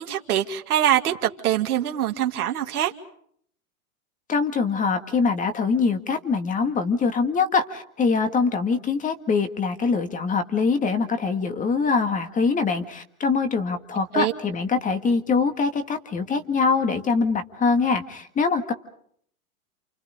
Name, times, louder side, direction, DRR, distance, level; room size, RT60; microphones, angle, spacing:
voice 1, 0.0-2.9 14.1-14.3, right 11 dB, 80° right, 4 dB, 2.3 m, -23 dB
voice 2, 4.3-18.7, left 4 dB, 15° left, 9 dB, 1.9 m, -23 dB
29.0 x 28.5 x 5.1 m, 0.64 s
hypercardioid pair, 140°, 44 cm